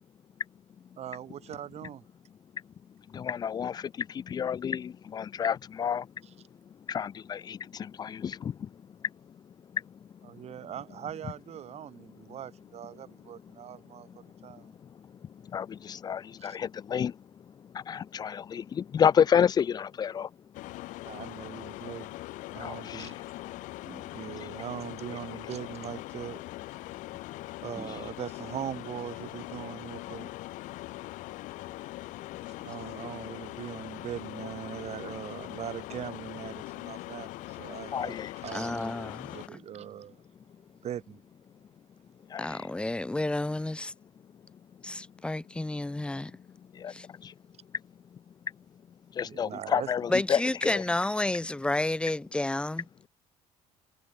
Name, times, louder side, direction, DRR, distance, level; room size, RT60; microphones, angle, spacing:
voice 1, 1.0-2.0 10.3-14.7 16.4-16.6 21.0-22.2 22.5-23.2 24.1-26.4 27.6-30.3 32.6-38.9 39.3-40.2 40.8-41.2 49.2-49.9, right 10 dB, 55° right, 5.9 m, -41 dB
voice 2, 3.1-6.1 6.9-8.7 9.7-10.1 14.4-17.2 17.6-20.3 22.6-23.2 24.4-24.5 27.8-28.1 37.9-38.3 42.3-42.7 46.7-47.3 49.1-50.8, left 8 dB, 30° left, 0.4 m, -30 dB
sound 1, 20.5-39.5, left 19 dB, 75° left, 1.1 m, -41 dB
sound 2, 23.8-24.7 27.7-28.6, right 2 dB, 10° right, 2.0 m, -50 dB
voice 3, 38.5-39.3 42.4-43.9 44.8-46.3 46.9-47.1 50.1-53.1, left 2 dB, 10° left, 0.8 m, -30 dB
cardioid pair, 100°, 13 cm